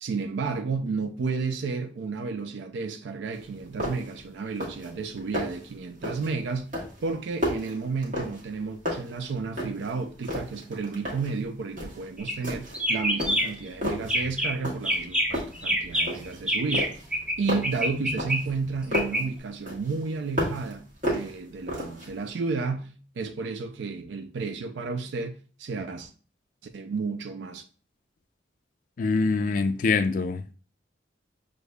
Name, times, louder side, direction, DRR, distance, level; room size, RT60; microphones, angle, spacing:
voice 1, 0.0-6.7 7.0-16.9 17.4-26.1 26.6-27.6, right 4 dB, 75° right, 0.4 m, -32 dB
sound 1, 3.3-3.4 3.8-4.2 4.5-4.9 5.2-5.7 6.0-6.4 6.7-8.6 8.9-9.9 10.2-11.4 11.8-12.0 12.4-12.9 13.2-14.1 14.6-15.0 15.3-16.4 16.7-19.2 19.7-20.7 21.0-22.1, left 1 dB, 45° right, 1.3 m, -32 dB
sound 2, 12.2-12.5 12.7-13.7 14.0-14.5 14.9-17.4 17.6-19.2, equal, 5° right, 0.5 m, -27 dB
voice 2, 29.0-30.5, left 4 dB, 45° left, 0.3 m, -24 dB
6.4 x 2.6 x 2.2 m
head